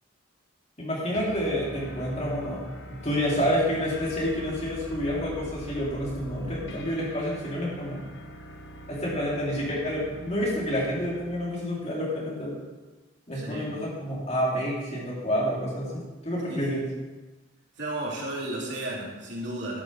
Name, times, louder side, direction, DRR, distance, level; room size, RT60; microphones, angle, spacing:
voice 1, 0.8-2.6 2.9-8.0 8.9-12.6 13.3-16.8, equal, 35° left, -5 dB, 3.4 m, -29 dB
sound 1, 1.1-11.5, equal, 65° left, 1.3 m, -43 dB
voice 2, 13.3-13.7 16.5-16.8 17.8-19.8, right 1 dB, 60° right, -3 dB, 3.2 m, -34 dB
12.0 x 7.1 x 6.7 m, 1.2 s
head